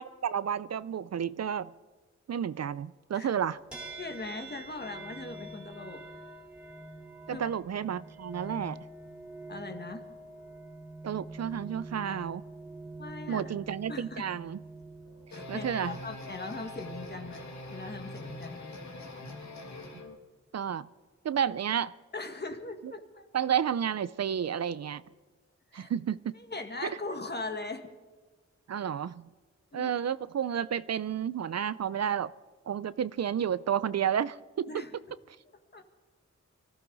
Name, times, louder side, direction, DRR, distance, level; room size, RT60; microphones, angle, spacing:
voice 1, 0.0-1.7 2.3-3.6 7.3-8.8 11.0-12.4 13.3-14.6 15.5-16.0 20.5-20.9 21.2-21.9 23.3-25.0 25.7-26.3 26.8-26.9 28.7-29.3 29.7-32.3 32.7-34.7, right 8 dB, 60° right, 17 dB, 0.5 m, -31 dB
sound 1, 3.7-17.2, right 2 dB, 5° right, 3.3 m, -46 dB
voice 2, 4.0-6.0 7.3-7.4 9.5-10.0 13.0-13.5 13.9-14.2 15.3-18.9 22.1-23.3 25.7-25.9 26.3-27.9 29.7-29.9 34.7-35.0 35.7-35.8, left 3 dB, 35° left, 6 dB, 1.8 m, -40 dB
sound 2, 15.1-20.2, left 2 dB, 75° left, 2.1 m, -43 dB
24.0 x 15.0 x 4.0 m, 1.4 s
wide cardioid pair, 110°, 29 cm